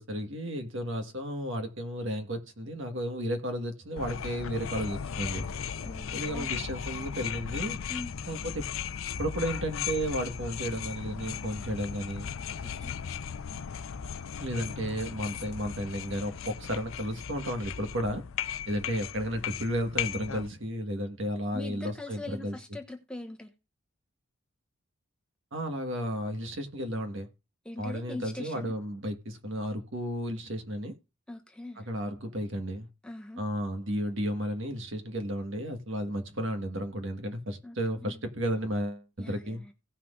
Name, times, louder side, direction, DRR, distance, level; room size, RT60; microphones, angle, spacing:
voice 1, 0.0-5.5 6.1-7.8 8.3-8.7 9.2-12.3 14.4-18.2 18.7-22.6 25.5-27.3 27.8-30.9 31.8-32.9 33.4-39.6, equal, 60° right, 1.5 m, -33 dB
sound 1, 4.0-20.5, left 8 dB, 70° left, 0.5 m, -37 dB
voice 2, 5.8-6.6 7.9-8.1 12.6-13.0 21.5-23.5 27.6-28.7 31.3-31.9 33.0-33.4 37.6-37.8 38.0-38.2 39.2-39.7, left 2 dB, 5° left, 1.1 m, -42 dB
17.5 x 5.9 x 2.5 m
head